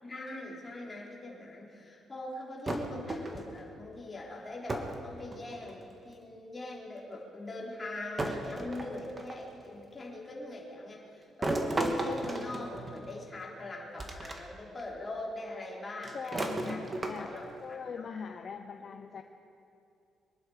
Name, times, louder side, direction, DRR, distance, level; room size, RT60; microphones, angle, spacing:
voice 1, 0.0-16.8 17.2-18.1 18.9-19.1, left 2 dB, 25° left, -3 dB, 3.9 m, -42 dB
sound 1, 2.7-3.6 4.7-5.0 5.3-5.9 7.0-7.1 8.2-9.5 11.4-13.3 14.0-14.4 14.8-14.9 16.0-17.5, right 1 dB, 25° right, 1.7 m, -35 dB
voice 2, 16.1-17.3 17.6-19.2, left 6 dB, 50° left, 6 dB, 0.8 m, -41 dB
24.0 x 10.5 x 5.1 m, 2.5 s
cardioid pair, 90°, 0 cm